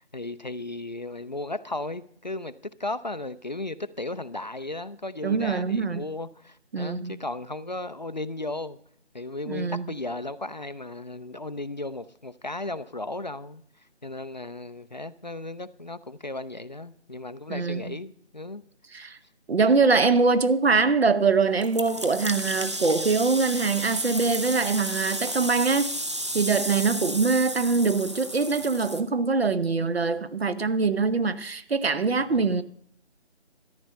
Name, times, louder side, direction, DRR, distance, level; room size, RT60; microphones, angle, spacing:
voice 1, 0.0-8.8 9.1-13.6 14.0-18.6 32.2-32.5, left 2 dB, 40° left, 0.4 m, -35 dB
voice 2, 5.2-6.0 6.7-7.2 9.5-9.9 17.5-18.0 18.9-19.2 19.5-25.9 26.3-32.6, right 4 dB, 65° right, 0.9 m, -23 dB
sound 1, 21.6-29.0, right 1 dB, 25° right, 0.6 m, -33 dB
14.0 x 10.5 x 5.4 m
figure-of-eight pair, 160°, 33 cm